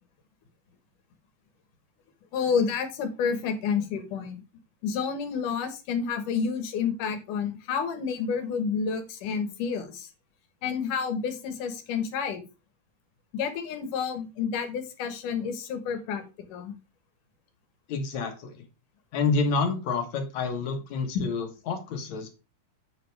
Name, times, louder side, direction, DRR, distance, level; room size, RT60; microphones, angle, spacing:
voice 1, 2.3-4.4 4.8-10.1 10.6-12.4 13.3-16.2 16.5-16.7 21.1-21.2, left 6 dB, 85° left, 8 dB, 3.0 m, -29 dB
voice 2, 17.9-18.6 19.1-22.3, left 4 dB, 65° left, 5 dB, 2.6 m, -28 dB
8.2 x 6.5 x 3.4 m, 0.29 s
omnidirectional pair, 3.6 m